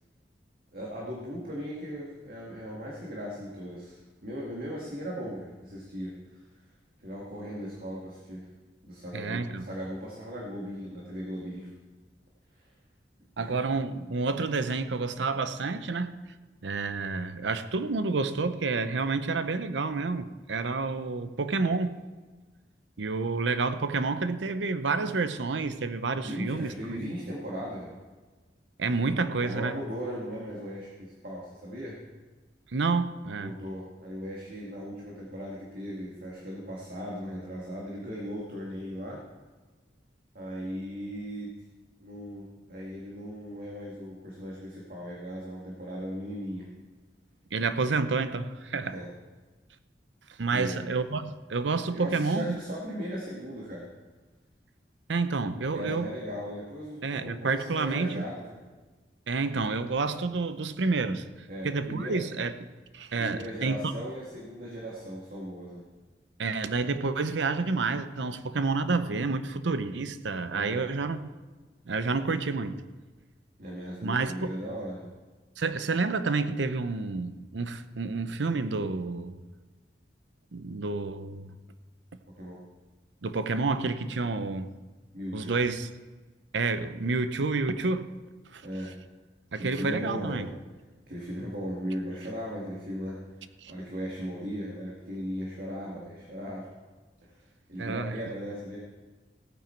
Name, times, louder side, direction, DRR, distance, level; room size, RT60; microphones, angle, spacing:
voice 1, 0.7-6.4 7.0-8.5 8.8-11.7 12.5-12.7 13.4-13.6 26.2-27.9 29.4-32.0 33.4-39.2 40.3-41.5 42.0-46.7 48.8-49.1 50.5-50.8 51.9-53.9 55.7-58.6 61.5-62.2 63.1-65.9 70.5-70.9 73.6-75.1 82.3-82.6 85.1-85.6 88.6-88.9 89.6-90.5 91.1-93.2 93.7-96.7 97.2-97.4 97.7-98.8, equal, 55° right, -4 dB, 2.0 m, -37 dB
voice 2, 9.1-9.6 13.4-16.1 16.6-21.9 23.0-27.1 28.8-29.7 32.7-33.5 47.5-48.9 50.4-52.6 55.1-56.1 57.0-58.2 59.3-62.5 62.9-63.9 66.4-71.3 71.9-72.8 74.0-74.5 75.6-79.4 80.5-81.5 83.2-84.7 85.3-85.9 86.5-88.1 88.5-88.7 89.5-90.5 93.6-93.7 97.8-98.2, right 3 dB, 90° right, 11 dB, 0.7 m, -29 dB
16.5 x 9.0 x 4.6 m, 1.3 s
head